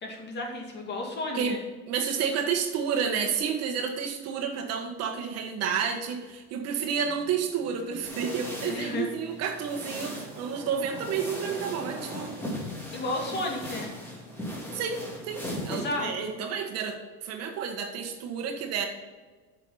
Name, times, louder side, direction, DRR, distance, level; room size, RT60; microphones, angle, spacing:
voice 1, 0.0-1.6 8.7-9.1 12.9-13.9 15.7-16.2, left 2 dB, 35° left, 1 dB, 2.4 m, -32 dB
voice 2, 1.9-12.3 14.7-18.9, right 7 dB, 55° right, 4 dB, 1.5 m, -30 dB
sound 1, 7.0-9.0 10.3-12.9 13.4-14.5, right 2 dB, 15° right, 2.7 m, -46 dB
sound 2, 8.0-16.4, left 1 dB, 10° left, 2.8 m, -39 dB
9.1 x 6.6 x 5.6 m, 1.3 s
cardioid pair, 140°, 30 cm